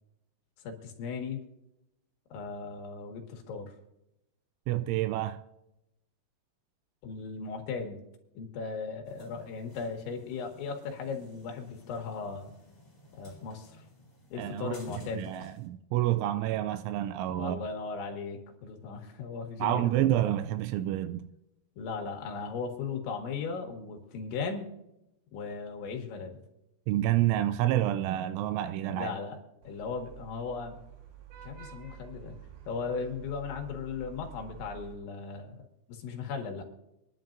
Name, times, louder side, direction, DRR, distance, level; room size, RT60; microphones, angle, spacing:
voice 1, 0.6-1.4 2.3-3.7 7.0-8.0 8.4-12.5 13.1-13.8 14.3-15.5 17.3-19.9 21.8-24.7 25.3-26.3 28.9-29.4 29.6-30.8 31.4-32.4 32.7-35.6 35.9-36.6, left 5 dB, 75° left, 4.0 m, -37 dB
voice 2, 4.7-5.4 14.4-17.6 19.6-21.3 26.9-29.1, right 13 dB, 85° right, 3.0 m, -29 dB
sound 1, 9.0-15.7, left 2 dB, 10° left, 1.8 m, -52 dB
Vehicle horn car horn honking / Traffic noise roadway noise, 29.6-34.9, right 9 dB, 65° right, 3.1 m, -49 dB
25.0 x 11.0 x 2.6 m
omnidirectional pair, 5.4 m